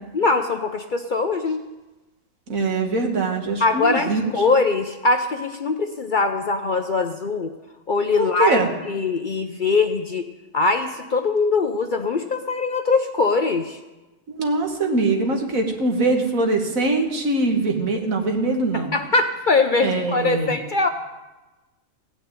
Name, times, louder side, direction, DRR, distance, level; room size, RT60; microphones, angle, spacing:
voice 1, 0.1-1.6 3.6-7.5 7.9-10.3 10.5-13.8 18.7-20.9, left 3 dB, 50° left, 7 dB, 0.6 m, -22 dB
voice 2, 2.5-4.2 8.2-8.7 14.3-18.9 19.8-20.5, right 2 dB, 80° right, 3 dB, 2.0 m, -22 dB
16.0 x 6.2 x 9.3 m, 1.1 s
omnidirectional pair, 1.4 m